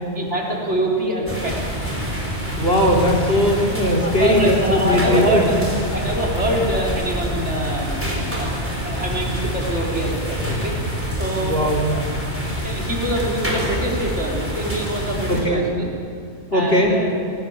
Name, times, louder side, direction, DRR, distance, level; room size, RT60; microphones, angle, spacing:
voice 1, 0.2-1.6 4.0-10.7 11.1-11.6 11.9-12.1 12.6-15.9 16.5-17.1, right 1 dB, 45° right, -2 dB, 4.3 m, -25 dB
sound 1, 1.3-15.4, equal, 10° right, 4.7 m, -26 dB
voice 2, 2.6-5.5 11.4-11.9 15.3-15.7 16.5-17.0, left 1 dB, 40° left, 1 dB, 3.3 m, -19 dB
27.5 x 18.5 x 7.2 m, 2.4 s
omnidirectional pair, 1.6 m